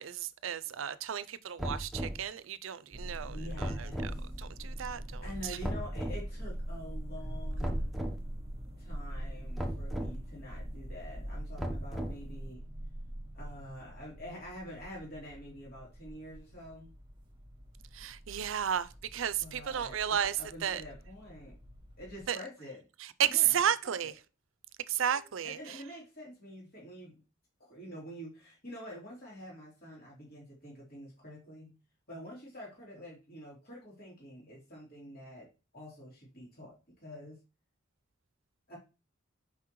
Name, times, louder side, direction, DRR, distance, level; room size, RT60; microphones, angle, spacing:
voice 1, 0.0-4.1 4.4-5.6 17.9-20.3 20.6-20.8 22.3-22.4 23.2-24.1 24.9-25.8, right 9 dB, 80° right, 0.5 m, -33 dB
sound 1, 1.6-2.2 3.6-4.2 5.6-6.2 7.6-8.2 9.6-10.1 11.6-12.3, equal, ahead, 0.8 m, -36 dB
sound 2, 2.9-22.3, equal, 25° right, 1.2 m, -42 dB
voice 2, 3.2-4.3 5.2-7.9 8.8-12.6 13.3-16.9 19.4-21.6 22.0-22.8 23.2-23.6 23.8-24.1 25.0-27.2 27.6-31.8 32.1-35.5 35.7-37.4 38.7-38.8, equal, 50° left, 2.9 m, -47 dB
5.9 x 5.5 x 3.1 m
head